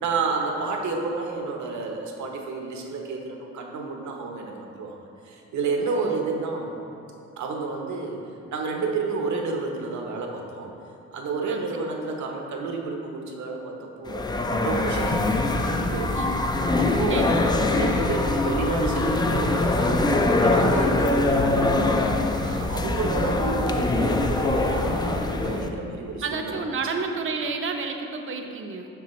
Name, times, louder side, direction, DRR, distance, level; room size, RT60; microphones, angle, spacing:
voice 1, 0.0-4.9 5.2-6.7 7.4-8.2 8.5-10.7 11.1-14.3 14.6-16.3 16.8-17.5 17.8-20.1 20.4-22.1 22.4-26.6, right 4 dB, 70° right, 1 dB, 1.0 m, -30 dB
voice 2, 5.8-6.3 11.5-11.6 16.1-16.4 17.1-17.5 21.0-21.1 26.2-28.9, right 4 dB, 45° right, 4 dB, 0.7 m, -31 dB
sound 1, 14.1-25.7, left 2 dB, 15° left, 0.4 m, -23 dB
7.0 x 6.1 x 3.1 m, 2.7 s
cardioid pair, 90°, 30 cm